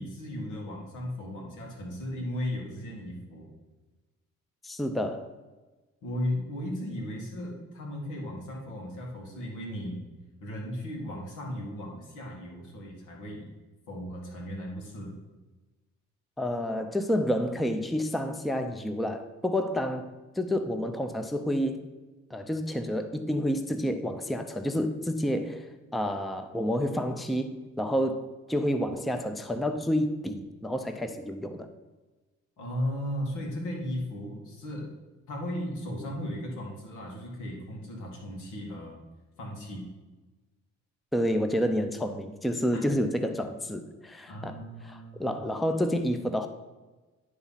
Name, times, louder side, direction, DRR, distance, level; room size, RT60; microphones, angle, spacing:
voice 1, 0.0-3.5 6.0-10.0 10.4-13.5 13.9-15.2 32.6-34.9 35.3-39.0 39.4-39.9 42.7-42.8 44.3-45.4, left 1 dB, 80° left, -1 dB, 2.2 m, -36 dB
voice 2, 4.6-5.3 16.4-20.1 20.4-21.8 22.3-31.7 41.1-44.6 44.8-46.5, equal, ahead, 8 dB, 0.5 m, -29 dB
10.5 x 3.7 x 5.6 m, 1.2 s
cardioid pair, 90°, 30 cm